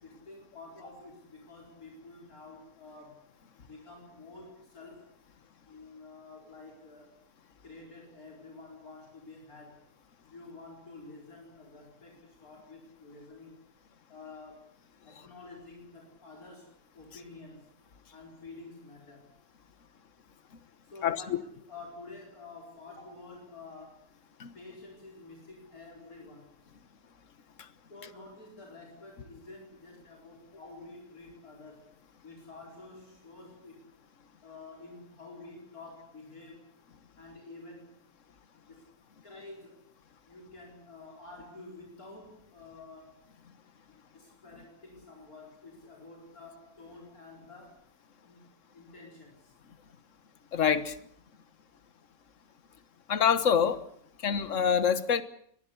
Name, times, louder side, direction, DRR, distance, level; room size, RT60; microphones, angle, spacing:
voice 1, 0.0-3.2 3.6-5.1 5.7-7.2 7.6-9.9 10.3-13.6 14.1-14.7 15.0-17.7 18.1-19.3 20.8-24.0 24.5-26.6 27.9-31.9 32.2-33.9 34.4-36.6 37.2-38.0 38.6-38.9 39.2-39.8 40.3-43.2 44.1-47.8 48.2-49.5, left 3 dB, 80° left, -1 dB, 5.0 m, -49 dB
voice 2, 50.5-50.9 53.1-53.8 54.2-55.2, left 7 dB, 60° left, 13 dB, 1.6 m, -25 dB
23.5 x 19.0 x 8.3 m, 0.66 s
omnidirectional pair, 1.5 m